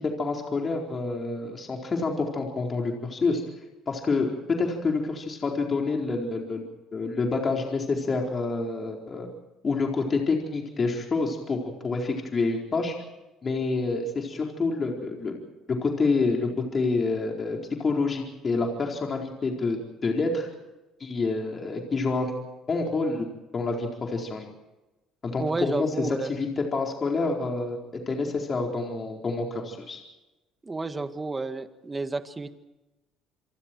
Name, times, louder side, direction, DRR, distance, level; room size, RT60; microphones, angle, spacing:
voice 1, 0.0-3.4 3.9-6.6 6.9-9.3 9.6-12.9 13.4-15.4 15.7-20.5 21.0-22.3 22.7-23.3 23.5-24.4 25.2-30.0, left 3 dB, 35° left, 1 dB, 4.4 m, -28 dB
voice 2, 25.4-26.3 30.6-32.5, right 3 dB, 20° right, 9 dB, 1.9 m, -31 dB
28.0 x 23.5 x 4.7 m, 1.0 s
supercardioid pair, 95°, 0 cm